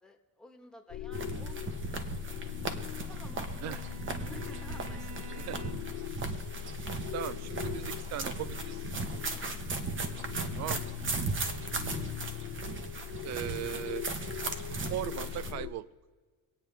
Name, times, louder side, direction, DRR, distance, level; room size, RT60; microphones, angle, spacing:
voice 1, 0.0-2.1 3.1-3.9 4.2-5.1 6.3-6.4 12.2-12.4, left 1 dB, ahead, 1 dB, 1.4 m, -52 dB
sound 1, 0.9-15.7, left 11 dB, 55° left, 0.8 m, -40 dB
sound 2, 1.1-15.5, right 4 dB, 30° right, 1.1 m, -37 dB
Bowed string instrument, 3.0-6.1, right 6 dB, 80° right, 1.0 m, -50 dB
voice 2, 7.1-8.9 10.6-10.9 13.2-14.1 14.9-15.9, right 12 dB, 45° right, 18 dB, 0.5 m, -38 dB
25.5 x 9.0 x 3.4 m, 1.4 s
cardioid pair, 135°, 38 cm